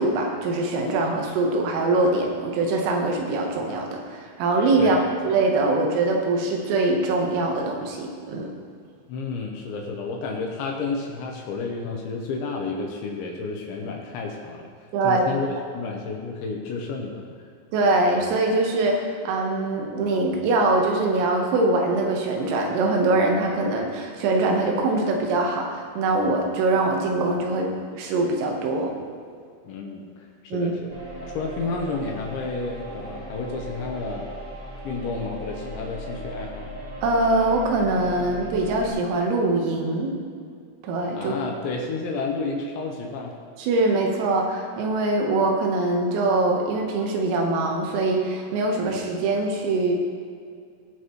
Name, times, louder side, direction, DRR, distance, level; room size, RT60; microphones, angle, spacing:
voice 1, 0.0-8.5 14.9-15.3 17.7-28.9 30.5-30.7 37.0-40.1 40.8-41.3 43.6-49.9, right 2 dB, 85° right, 1 dB, 3.9 m, -23 dB
voice 2, 9.1-14.7 15.0-17.2 29.6-30.9 31.2-34.3 34.8-36.7 41.2-43.4, left 4 dB, 75° left, 0 dB, 2.9 m, -31 dB
sound 1, 30.9-38.9, right 1 dB, 40° right, 1.7 m, -37 dB
20.0 x 7.0 x 3.1 m, 2.2 s
omnidirectional pair, 5.9 m